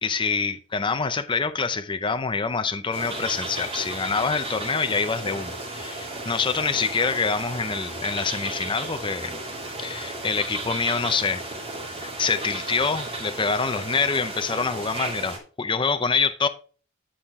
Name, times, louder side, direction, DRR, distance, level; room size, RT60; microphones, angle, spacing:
voice 1, 0.0-9.4 9.8-11.5 12.0-16.5, left 5 dB, 25° left, 0.6 m, -26 dB
sound 1, 2.9-15.4, right 2 dB, 30° right, 3.0 m, -34 dB
10.0 x 5.7 x 3.6 m
head